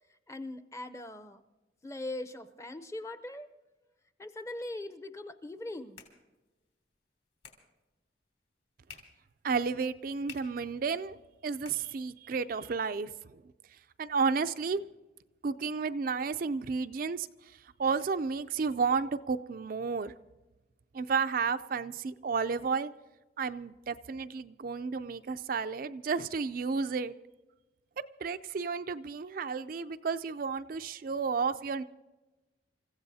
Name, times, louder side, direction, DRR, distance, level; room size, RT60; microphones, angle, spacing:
voice 1, 0.3-1.4 1.8-3.5 4.2-6.0, left 2 dB, 15° left, 9 dB, 0.6 m, -41 dB
sound 1, 5.4-12.5, left 6 dB, 55° left, 3.3 m, -56 dB
voice 2, 9.4-11.2 11.4-13.1 14.0-14.9 15.4-17.3 17.8-20.1 20.9-22.9 23.4-27.1 28.0-31.8, right 5 dB, 50° right, 10 dB, 0.4 m, -32 dB
29.0 x 15.0 x 2.7 m, 1.1 s
head